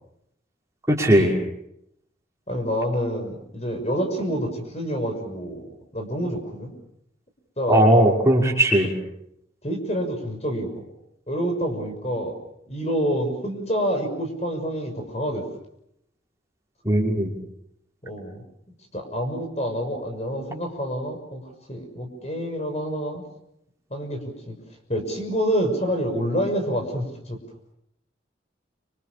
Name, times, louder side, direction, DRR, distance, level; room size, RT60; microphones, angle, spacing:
voice 1, 0.9-1.3 7.7-8.9 16.8-17.3, right 1 dB, 15° right, -2 dB, 5.9 m, -18 dB
voice 2, 2.5-6.7 7.6-7.8 9.6-10.8 11.3-12.3 12.7-15.5 18.0-18.4 18.9-23.2 23.9-24.6 24.9-27.4, equal, 35° left, 5 dB, 6.2 m, -27 dB
28.0 x 27.0 x 6.9 m, 0.77 s
head